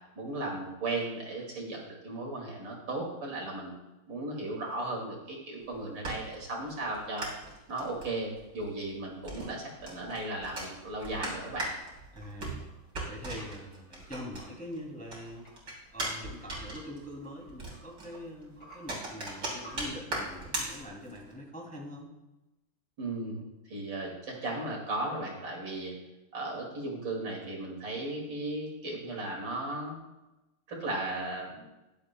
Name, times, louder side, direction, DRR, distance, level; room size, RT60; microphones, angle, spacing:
voice 1, 0.1-3.7 4.1-7.3 7.7-11.7 23.0-25.9 26.3-30.0 30.7-31.6, right 2 dB, 60° right, -1 dB, 3.0 m, -36 dB
sound 1, 5.6-14.8 15.1-21.3, right 2 dB, 45° right, 3.7 m, -39 dB
sound 2, 10.9-19.8, right 1 dB, 60° left, 3.9 m, -56 dB
voice 2, 12.1-12.6 13.1-15.5 15.9-22.1, equal, 5° left, -3 dB, 2.4 m, -43 dB
15.5 x 11.0 x 2.2 m, 1.0 s
omnidirectional pair, 2.3 m